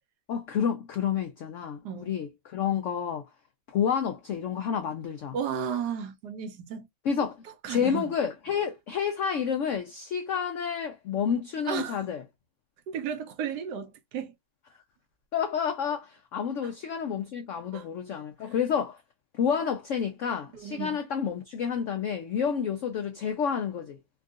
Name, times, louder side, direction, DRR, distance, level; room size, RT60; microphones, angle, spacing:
voice 1, 0.3-3.2 3.7-5.4 7.0-7.3 7.7-12.2 15.3-19.0 19.3-24.0, left 7 dB, 80° left, 0.6 m, -29 dB
voice 2, 5.3-6.9 7.6-8.1 11.7-12.0 12.9-14.3 16.6-16.7 17.7-17.9 18.4-18.5 20.5-21.0, right 7 dB, 75° right, 1.2 m, -34 dB
3.5 x 2.3 x 2.4 m
omnidirectional pair, 1.9 m